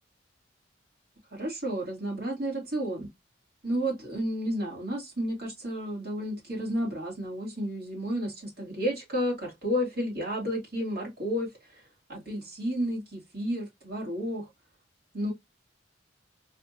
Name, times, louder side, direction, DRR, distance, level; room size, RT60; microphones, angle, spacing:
voice 1, 1.3-3.1 3.6-11.8 12.1-14.5 15.1-15.3, equal, 55° right, 2.6 m, -32 dB
4.0 x 2.8 x 2.6 m
head